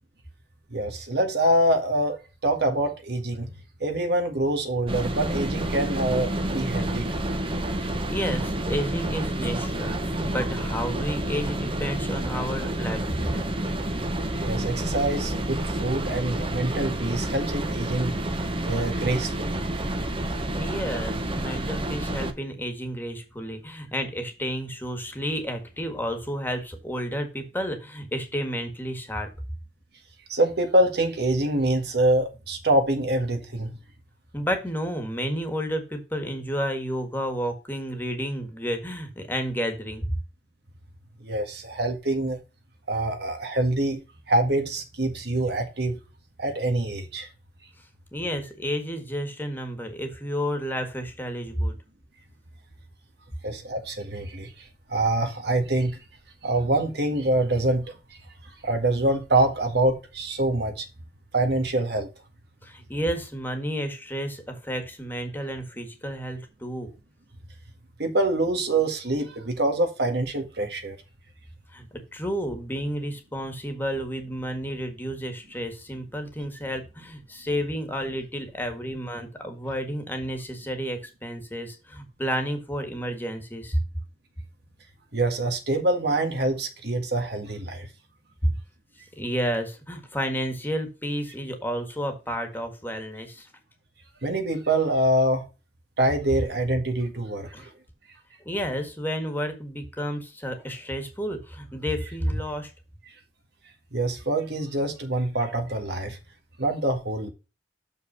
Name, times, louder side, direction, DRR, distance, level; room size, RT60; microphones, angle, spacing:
voice 1, 0.7-3.5 3.8-7.2 14.4-18.2 18.6-19.6 30.3-33.7 41.2-42.4 42.9-44.0 44.3-46.0 46.4-47.3 53.4-56.0 56.4-58.0 58.6-60.9 61.3-62.1 68.0-71.0 85.1-87.9 94.2-95.4 96.0-97.7 103.9-106.2 106.6-107.3, right 1 dB, 65° right, 1.8 m, -25 dB
sound 1, 4.9-22.3, right 1 dB, 30° right, 1.0 m, -29 dB
voice 2, 7.8-13.5 20.6-29.3 34.3-40.1 48.1-51.8 62.6-66.9 71.7-71.9 72.1-83.8 88.4-88.5 89.2-93.5 97.5-97.7 98.4-102.7, equal, 10° left, 1.7 m, -31 dB
6.7 x 5.6 x 5.5 m
head